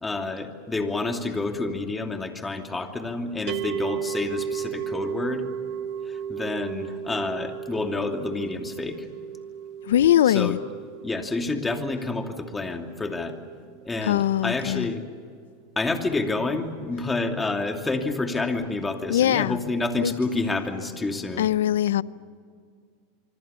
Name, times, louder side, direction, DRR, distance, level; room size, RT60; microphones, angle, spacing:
voice 1, 0.0-5.5 6.1-9.1 10.3-10.6 11.0-13.4 13.8-15.0 15.8-21.5, left 3 dB, 10° left, 2.8 m, -29 dB
sound 1, 3.5-14.6, right 8 dB, 50° right, 1.0 m, -35 dB
voice 2, 9.9-10.6 14.0-14.9 19.1-19.6 20.0-20.1 21.4-22.0, left 11 dB, 85° left, 0.6 m, -21 dB
25.5 x 25.0 x 6.9 m
supercardioid pair, 125°, 0 cm